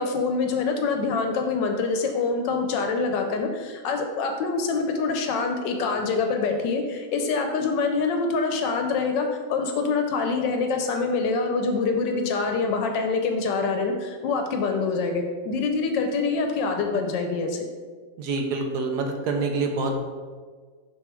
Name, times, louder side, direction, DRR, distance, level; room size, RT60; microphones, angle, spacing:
voice 1, 0.0-17.6, left 4 dB, 80° left, 4 dB, 1.3 m, -25 dB
voice 2, 18.2-20.0, right 3 dB, 70° right, 3 dB, 1.2 m, -26 dB
5.9 x 3.6 x 4.4 m, 1.5 s
omnidirectional pair, 2.0 m